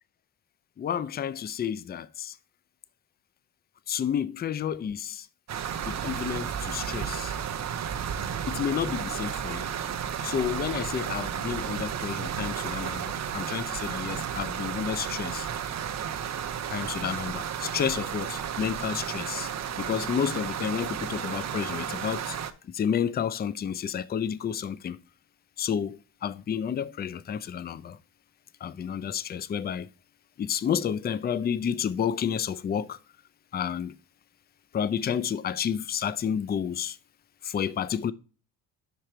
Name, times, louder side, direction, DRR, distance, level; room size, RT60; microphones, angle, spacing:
voice 1, 0.8-2.4 3.9-5.3 5.9-7.3 8.5-9.7 10.2-15.5 16.7-19.5 19.8-22.4 22.6-25.0 25.6-28.0 28.6-29.9 30.4-33.0 33.5-33.9 34.7-37.0 37.4-38.1, left 8 dB, 25° left, 0.4 m, -30 dB
sound 1, 5.5-22.5, right 8 dB, 40° right, 0.7 m, -33 dB
5.8 x 5.0 x 4.4 m
cardioid pair, 85°, 44 cm